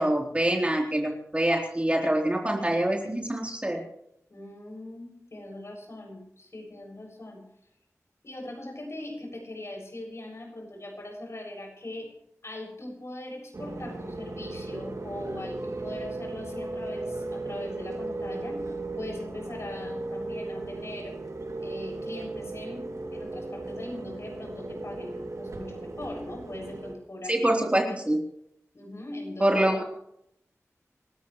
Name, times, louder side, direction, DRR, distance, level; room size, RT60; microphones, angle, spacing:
voice 1, 0.0-3.8 27.3-28.2 29.4-29.8, right 1 dB, 20° right, 0 dB, 3.8 m, -25 dB
voice 2, 4.3-7.4 8.2-12.1 12.4-21.2 21.6-27.5 27.8-27.9 28.7-29.8, left 1 dB, 55° left, 1 dB, 7.2 m, -40 dB
sound 1, 13.5-26.9, right 2 dB, 70° right, 2.9 m, -36 dB
28.0 x 13.5 x 3.3 m, 0.76 s
wide cardioid pair, 55°, 6 cm